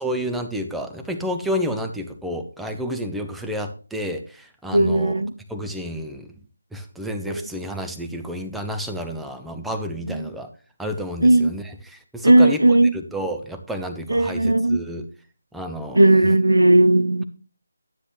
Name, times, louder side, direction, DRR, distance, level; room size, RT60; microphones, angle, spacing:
voice 1, 0.0-5.2 5.5-6.3 6.7-10.5 10.8-12.6 12.9-15.1 15.5-16.0, equal, ahead, 0.7 m, -30 dB
voice 2, 4.7-5.3 7.3-7.5 10.1-10.2 11.2-11.5 12.2-13.0 14.1-14.8 15.9-17.2, right 1 dB, 80° right, 0.9 m, -16 dB
11.5 x 9.8 x 3.1 m
figure-of-eight pair, 155°, 0 cm